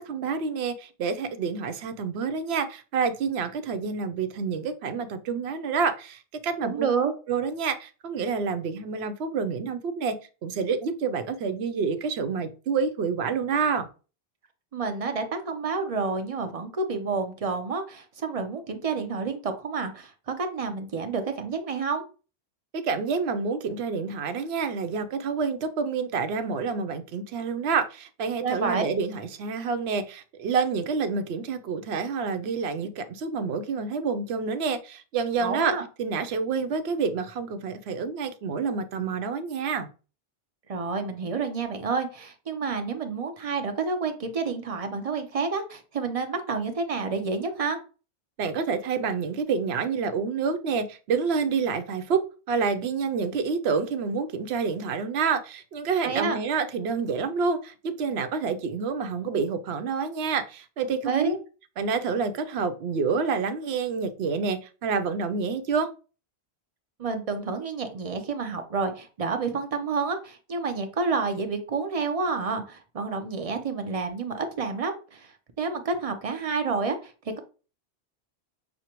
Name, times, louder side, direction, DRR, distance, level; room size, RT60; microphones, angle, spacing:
voice 1, 0.0-6.9 7.3-10.2 10.4-13.9 22.7-39.9 48.4-61.3 61.8-65.9, right 5 dB, 75° right, 10 dB, 0.8 m, -28 dB
voice 2, 6.6-7.1 14.7-22.0 28.4-28.8 35.4-35.8 40.7-47.8 56.0-56.4 61.1-61.4 67.0-75.3 75.6-77.1, right 4 dB, 40° right, 6 dB, 0.6 m, -29 dB
6.3 x 2.1 x 2.9 m, 0.34 s
omnidirectional pair, 1.1 m